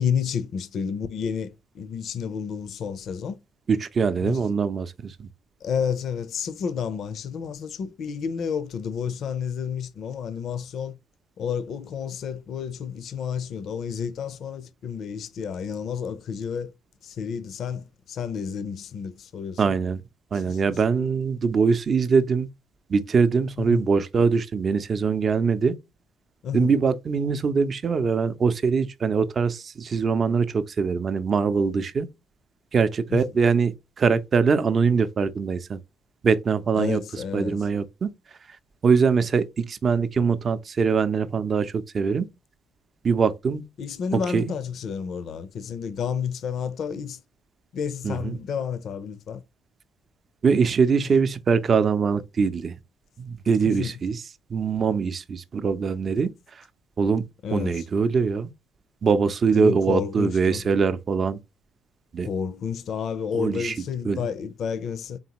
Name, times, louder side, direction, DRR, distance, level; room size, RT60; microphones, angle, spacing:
voice 1, 0.0-3.4 4.2-4.4 5.6-11.0 11.4-16.7 17.0-19.6 20.3-20.8 23.7-23.9 26.4-26.7 33.1-33.2 36.8-37.6 43.8-47.2 47.7-49.4 53.6-53.9 57.4-57.8 59.5-60.7 62.3-65.2, left 7 dB, 65° left, 0.5 m, -30 dB
voice 2, 3.7-5.3 19.6-20.0 20.3-22.5 22.9-25.7 26.5-32.1 32.7-35.8 36.2-37.0 37.3-38.1 38.8-42.3 43.0-43.7 44.1-44.5 48.0-48.4 50.4-52.7 53.2-54.2 54.5-56.3 56.6-56.7 57.0-58.5 59.0-61.4 62.1-62.3 63.3-63.7 64.0-64.2, right 5 dB, 45° right, 0.5 m, -23 dB
4.0 x 3.4 x 2.9 m
supercardioid pair, 70°, 0 cm